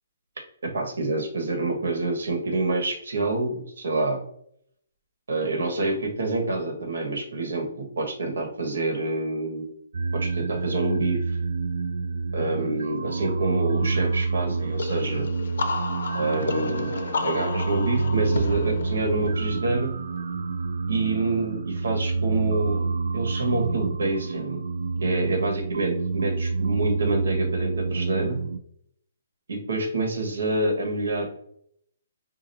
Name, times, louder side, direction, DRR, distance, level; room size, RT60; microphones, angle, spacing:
voice 1, 0.6-4.2 5.3-9.7 10.1-11.4 12.3-15.3 16.1-16.9 17.2-19.9 20.9-22.9 23.1-24.6 25.0-28.4 29.5-31.3, right 2 dB, 90° right, 3 dB, 1.4 m, -27 dB
sound 1, 9.9-28.6, right 4 dB, 65° right, 0.3 m, -28 dB
sound 2, 14.8-20.3, left 4 dB, 60° left, 0.5 m, -32 dB
5.0 x 2.3 x 2.7 m, 0.69 s
hypercardioid pair, 180°, 0 cm